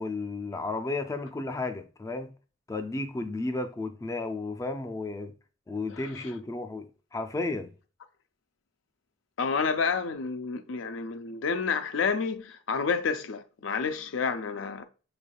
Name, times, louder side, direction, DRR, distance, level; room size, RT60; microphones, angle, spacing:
voice 1, 0.0-2.3 2.7-5.3 5.7-7.7, left 2 dB, 15° left, 0.3 m, -33 dB
voice 2, 9.4-14.9, left 5 dB, 85° left, 0.5 m, -29 dB
6.3 x 3.3 x 2.2 m
head